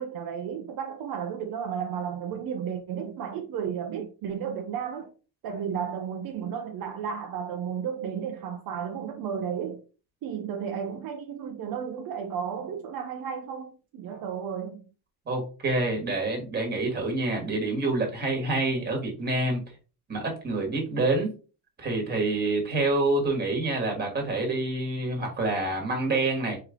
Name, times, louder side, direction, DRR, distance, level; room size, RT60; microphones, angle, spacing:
voice 1, 0.0-5.1 5.4-9.8 10.2-14.9, right 7 dB, 60° right, 0.7 m, -33 dB
voice 2, 15.3-19.6 20.1-21.3 21.8-26.6, right 2 dB, 25° right, 1.6 m, -27 dB
4.4 x 3.2 x 3.6 m
cardioid pair, 160°, 41 cm